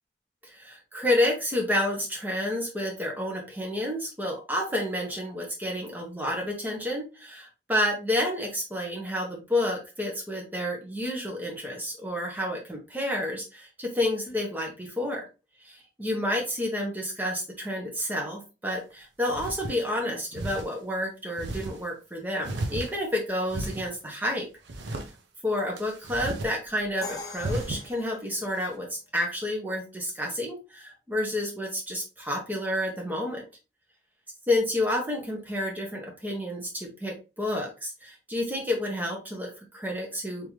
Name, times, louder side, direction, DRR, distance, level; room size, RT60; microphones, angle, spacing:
voice 1, 0.4-15.2 15.6-24.5 25.4-33.4 34.5-40.5, left 1 dB, 10° right, 0 dB, 1.1 m, -30 dB
sound 1, 18.7-18.8 19.3-19.8 20.3-20.7 21.4-21.8 22.4-23.2 23.5-23.9 24.7-25.1 25.8-26.5 26.8-26.9 27.4-27.9, right 2 dB, 80° right, 0.7 m, -34 dB
Crash cymbal, 27.0-28.9, left 3 dB, 20° left, 0.5 m, -42 dB
3.7 x 2.9 x 3.1 m, 0.30 s
head